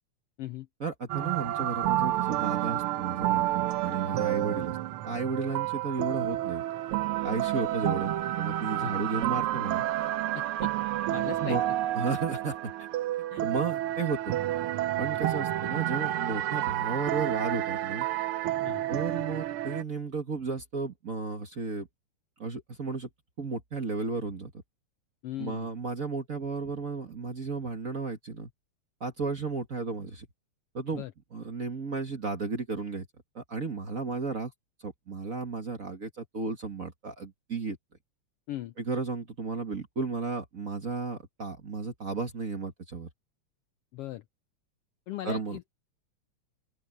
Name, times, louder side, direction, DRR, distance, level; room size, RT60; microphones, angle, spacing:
voice 1, 0.8-4.8 5.0-6.6 7.2-9.9 11.4-11.6 11.9-12.7 13.4-14.4 15.0-18.1 18.9-21.9 22.4-23.1 23.4-24.5 25.4-28.5 29.0-30.3 30.7-31.0 31.3-33.1 33.3-34.5 34.8-37.8 38.8-43.1 45.2-45.6, right 4 dB, 35° right, 1.4 m, -33 dB
sound 1, 1.1-19.8, right 14 dB, 80° right, 1.2 m, -30 dB
voice 2, 10.3-10.7 11.1-11.7 13.3-13.4 18.6-18.8 25.2-25.7 30.9-31.1 38.5-38.7 43.9-44.2 45.1-45.7, left 13 dB, 85° left, 1.3 m, -38 dB
open air
omnidirectional pair, 3.4 m